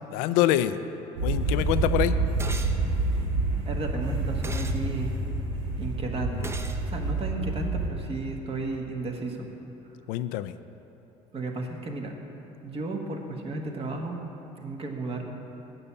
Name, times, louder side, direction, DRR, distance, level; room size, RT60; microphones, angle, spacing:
voice 1, 0.1-0.8 1.2-2.2 10.1-10.5, left 13 dB, 80° left, 13 dB, 0.4 m, -25 dB
sound 1, 1.2-7.9, right 3 dB, 80° right, 1.5 m, -28 dB
sound 2, 2.4-2.8 4.4-4.8 6.4-6.8, right 2 dB, 15° right, 0.6 m, -37 dB
voice 2, 3.6-5.2 5.8-6.5 6.9-9.5 11.3-12.1 12.6-14.2 14.6-15.3, right 2 dB, 40° right, 2 dB, 1.4 m, -33 dB
8.6 x 6.8 x 6.9 m, 3.0 s
supercardioid pair, 85°, 15 cm